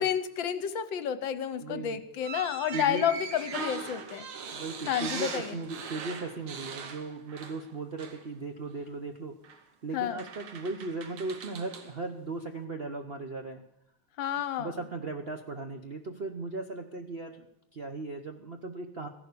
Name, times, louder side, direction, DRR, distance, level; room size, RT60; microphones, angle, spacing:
voice 1, 0.0-4.3 4.8-5.6 9.9-10.2 14.2-14.7, left 9 dB, 70° left, 13 dB, 1.4 m, -30 dB
voice 2, 1.6-2.0 2.7-3.1 4.5-13.6 14.6-17.5 17.7-19.1, right 3 dB, 55° right, 5 dB, 0.7 m, -37 dB
sound 1, 2.2-7.7 8.0-8.2 9.4-9.6 10.2-11.9, right 5 dB, 75° right, 2.2 m, -40 dB
15.0 x 11.5 x 6.8 m, 0.79 s
omnidirectional pair, 2.4 m